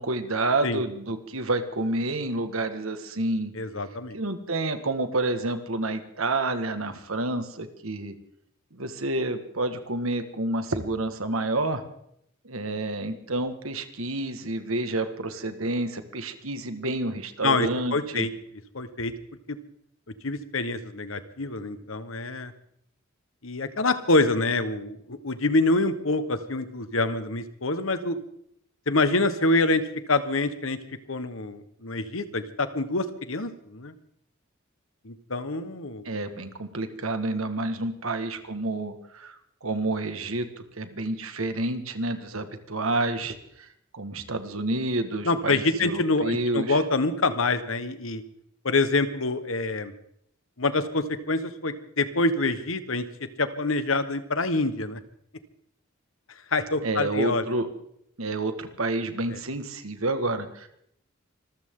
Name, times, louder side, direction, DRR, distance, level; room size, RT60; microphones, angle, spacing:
voice 1, 0.0-3.5 4.1-8.2 8.7-11.8 12.4-18.3 36.1-43.7 43.9-46.8 56.8-57.7 58.2-60.8, right 2 dB, 80° right, 8 dB, 1.9 m, -29 dB
voice 2, 3.5-4.2 17.4-18.3 18.7-19.1 19.5-19.6 20.2-22.5 23.4-28.2 28.9-30.8 31.1-33.9 35.0-36.1 45.2-48.2 48.6-49.9 50.6-53.0 53.4-55.0 56.5-57.4 59.3-59.4, left 2 dB, 70° left, 11 dB, 1.4 m, -26 dB
25.5 x 14.5 x 3.9 m, 0.71 s
head